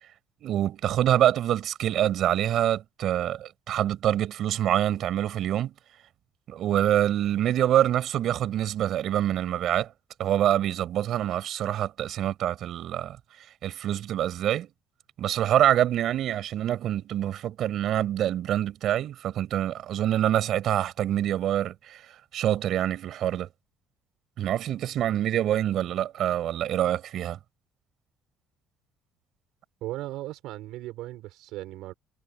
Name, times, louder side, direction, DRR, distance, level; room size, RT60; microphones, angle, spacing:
voice 1, 0.4-5.7 6.5-9.9 10.2-13.2 13.6-14.7 15.2-23.5 24.4-27.4, right 11 dB, 50° right, 6.1 m, -26 dB
voice 2, 29.8-31.9, right 16 dB, 75° right, 5.0 m, -37 dB
cardioid pair, 155°, 0 cm